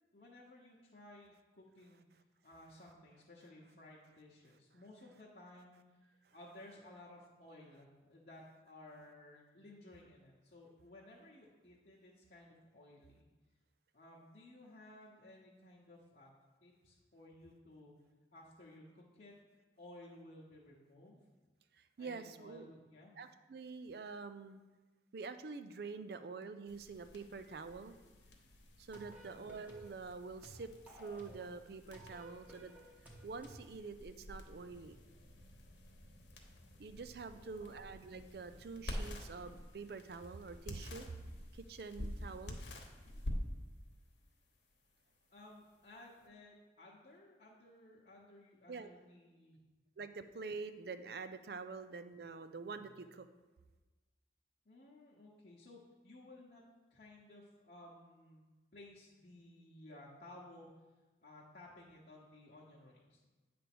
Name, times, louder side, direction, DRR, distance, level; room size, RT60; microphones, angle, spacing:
voice 1, 0.1-2.0 2.4-13.3 13.9-16.3 16.6-17.9 18.3-19.3 19.8-21.2 22.0-23.1 29.0-29.4 37.3-37.8 45.3-49.6 54.6-56.6 56.9-58.4 58.7-60.7 61.2-63.3, left 1 dB, 50° left, -5 dB, 1.0 m, -57 dB
voice 2, 21.7-22.7 23.2-24.6 25.1-28.0 28.8-32.7 33.2-35.0 36.8-41.1 41.5-42.6 48.7-48.9 50.0-53.3, right 4 dB, 60° right, 10 dB, 0.4 m, -46 dB
sound 1, 26.7-46.3, left 1 dB, 75° left, 1.1 m, -49 dB
sound 2, 28.9-30.0 30.4-31.5 31.9-33.7, right 1 dB, 10° right, 0.9 m, -56 dB
9.0 x 3.4 x 6.0 m, 1.2 s
head